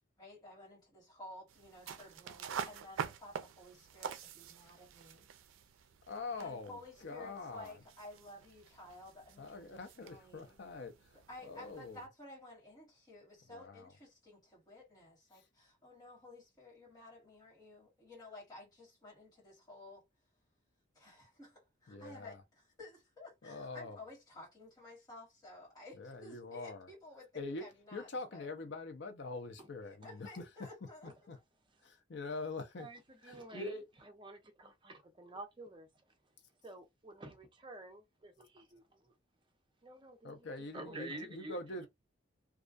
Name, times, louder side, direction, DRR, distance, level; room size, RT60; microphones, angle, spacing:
voice 1, 0.2-5.3 6.4-10.6 11.3-20.0 20.9-22.4 22.8-27.3 27.6-28.5 29.8-31.1, left 2 dB, 20° left, 1.4 m, -54 dB
sound 1, 1.5-12.1, right 7 dB, 90° right, 0.3 m, -47 dB
voice 2, 6.1-7.8 9.4-12.0 13.5-14.0 15.3-15.5 21.9-22.4 23.4-24.0 25.9-26.9 27.3-30.5 31.0-31.4 31.8-32.9 33.2-33.8 40.2-41.9, left 3 dB, 60° left, 0.5 m, -44 dB
voice 3, 32.8-33.8 34.2-35.9 36.6-39.1 39.8-40.4 40.7-41.6, right 1 dB, 25° right, 0.6 m, -48 dB
2.3 x 2.2 x 2.5 m
head